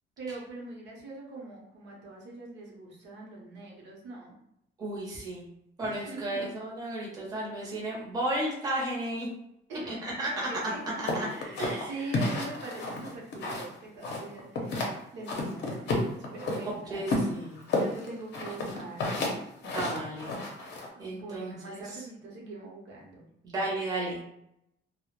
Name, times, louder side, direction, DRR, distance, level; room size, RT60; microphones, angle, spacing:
voice 1, 0.2-4.4 5.8-6.5 9.7-10.0 10.5-14.8 15.1-17.1 17.7-19.0 21.0-23.3, right 2 dB, 65° right, -2 dB, 0.7 m, -43 dB
voice 2, 4.8-5.4 5.8-9.3 9.9-10.8 11.1-11.3 11.6-12.1 16.9-17.6 19.6-20.3 20.6-20.7 21.0-22.0 23.4-24.2, right 1 dB, 20° right, -5 dB, 0.6 m, -33 dB
sound 1, 11.1-13.7 14.0-14.9 15.3-16.6 17.1-20.9, left 2 dB, 60° left, 0.6 m, -31 dB
2.2 x 2.0 x 2.9 m, 0.77 s
cardioid pair, 175°, 20 cm